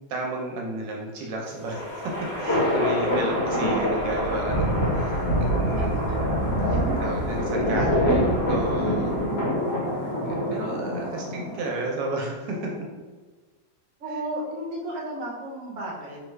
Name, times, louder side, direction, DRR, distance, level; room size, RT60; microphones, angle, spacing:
voice 1, 0.1-2.0 2.4-6.3 7.0-9.2 10.1-12.7 14.1-14.2, right 2 dB, 80° right, -1 dB, 1.2 m, -33 dB
sound 1, 1.4-11.9, left 1 dB, 65° left, 1.6 m, -27 dB
sound 2, 2.7-2.8 3.0-9.3, right 1 dB, 85° left, 1.6 m, -28 dB
voice 2, 5.4-7.0 7.3-8.3 8.8-9.3 10.0-10.2 14.0-16.2, right 1 dB, 60° right, -2 dB, 1.0 m, -35 dB
3.4 x 2.2 x 3.1 m, 1.3 s
omnidirectional pair, 1.9 m